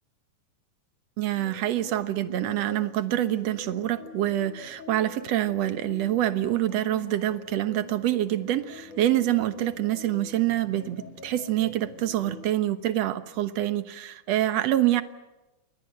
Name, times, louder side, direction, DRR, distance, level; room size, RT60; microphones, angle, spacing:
voice 1, 1.2-15.0, right 13 dB, 60° right, 10 dB, 2.1 m, -26 dB
sound 1, 1.3-12.5, left 3 dB, 70° left, 4.9 m, -44 dB
28.5 x 24.0 x 7.7 m, 1.0 s
omnidirectional pair, 3.7 m